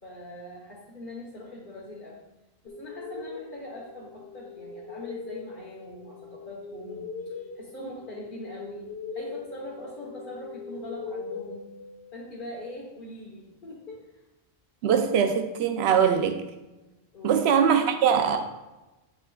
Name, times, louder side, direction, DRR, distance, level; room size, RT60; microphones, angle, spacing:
voice 1, 0.0-2.2 2.6-8.9 9.1-11.7 12.1-14.2 17.1-17.5, left 1 dB, 50° left, -5 dB, 1.4 m, -42 dB
sound 1, 2.7-12.4, left 4 dB, 85° left, 0.9 m, -41 dB
voice 2, 14.8-16.4 17.2-18.4, right 7 dB, 75° right, 7 dB, 0.9 m, -22 dB
8.2 x 5.7 x 2.3 m, 1.0 s
omnidirectional pair, 1.1 m